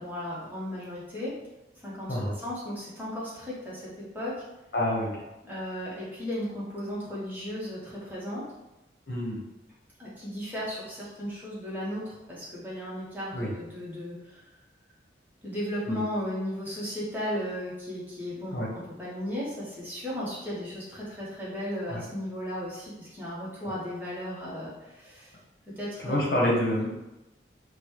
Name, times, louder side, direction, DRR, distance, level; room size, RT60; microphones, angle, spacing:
voice 1, 0.0-1.3 1.8-4.4 5.4-8.4 10.0-14.4 15.4-25.3 25.8-26.2, equal, 10° right, -8 dB, 1.0 m, -35 dB
voice 2, 4.7-5.2 9.1-9.4 13.3-13.5 15.9-16.0 18.5-18.7 21.9-22.0 26.0-26.9, left 1 dB, 60° left, -4 dB, 1.0 m, -27 dB
3.9 x 2.2 x 3.0 m, 0.97 s
head